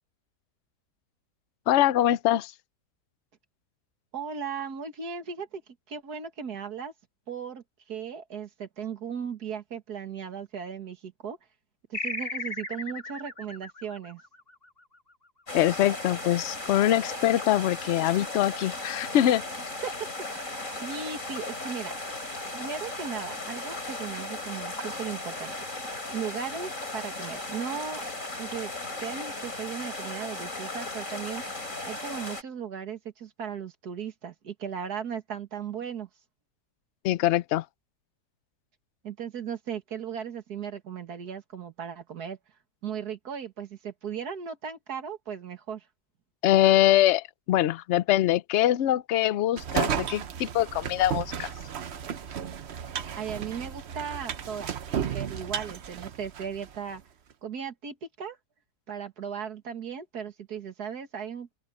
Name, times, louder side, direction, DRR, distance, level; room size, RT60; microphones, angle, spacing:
voice 1, 1.7-2.5 15.5-19.4 37.0-37.6 46.4-51.5, left 13 dB, 65° left, 0.7 m, -23 dB
voice 2, 4.1-5.6 5.9-6.9 7.3-11.4 11.9-14.2 19.8-19.9 20.3-22.0 22.5-25.6 26.1-28.0 28.4-28.7 29.0-31.4 31.9-36.1 39.0-42.4 42.8-45.9 53.2-54.8 55.1-57.0 57.4-58.4 58.9-61.6, right 7 dB, 65° right, 2.4 m, -37 dB
sound 1, 11.9-15.0, left 2 dB, 35° left, 2.9 m, -36 dB
sound 2, 15.5-32.4, left 2 dB, 50° left, 6.2 m, -36 dB
sound 3, 49.6-56.8, right 8 dB, 50° right, 0.9 m, -33 dB
open air
omnidirectional pair, 1.8 m